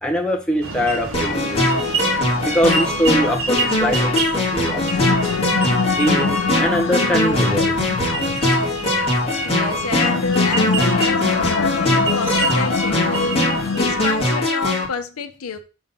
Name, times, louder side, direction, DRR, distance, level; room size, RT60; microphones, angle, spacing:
voice 1, 0.0-1.8 2.4-5.2 6.0-7.8, equal, 5° left, 1.1 m, -22 dB
sound 1, 0.6-14.4, right 4 dB, 65° right, 1.2 m, -30 dB
sound 2, 1.1-14.9, left 1 dB, 25° left, 1.9 m, -21 dB
sound 3, 4.6-14.4, left 5 dB, 60° left, 0.4 m, -25 dB
voice 2, 9.4-15.6, left 4 dB, 85° left, 0.7 m, -28 dB
5.6 x 3.9 x 5.3 m
head